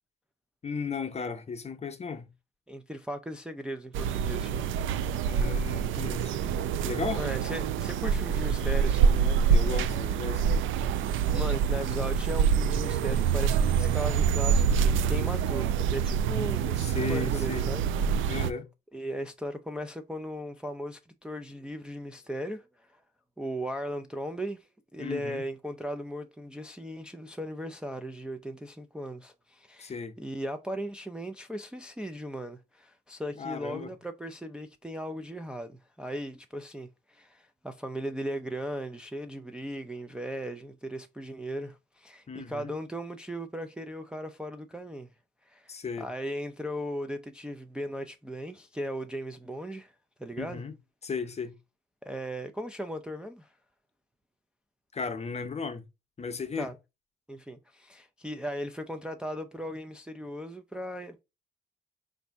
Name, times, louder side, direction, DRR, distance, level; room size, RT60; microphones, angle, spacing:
voice 1, 0.6-2.3 5.2-6.4 6.8-7.2 9.5-10.4 16.8-17.7 18.3-18.7 25.0-25.4 29.8-30.1 33.4-33.9 42.3-42.7 45.7-46.1 50.4-50.7 51.0-51.5 54.9-55.8 56.2-56.7, left 5 dB, 35° left, 0.7 m, -35 dB
voice 2, 2.7-4.8 7.1-9.5 11.0-18.3 18.9-23.0 23.4-45.1 45.4-49.9 50.2-50.6 52.0-53.5 56.6-56.8 57.3-61.2, equal, 5° right, 0.4 m, -37 dB
sound 1, 3.9-18.5, right 7 dB, 80° right, 0.4 m, -26 dB
4.1 x 2.6 x 3.4 m
cardioid pair, 90°, 20 cm